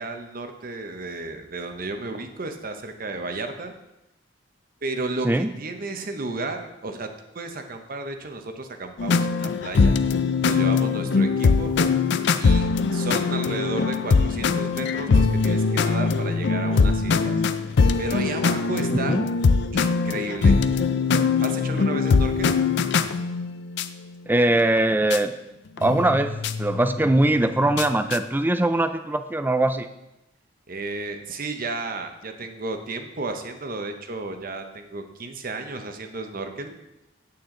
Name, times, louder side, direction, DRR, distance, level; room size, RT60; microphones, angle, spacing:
voice 1, 0.0-3.7 4.8-7.1 7.3-10.0 10.5-11.7 12.4-17.4 18.0-19.2 19.7-20.6 21.4-22.5 30.7-36.7, right 3 dB, 50° right, 6 dB, 0.9 m, -33 dB
sound 1, 9.0-23.9 24.8-24.9 25.1-25.2 25.8-28.2, left 4 dB, 65° left, 0.4 m, -22 dB
voice 2, 18.9-19.2 24.3-25.3 25.8-29.9, right 1 dB, 10° right, 10 dB, 0.4 m, -21 dB
8.7 x 8.4 x 3.8 m, 0.92 s
head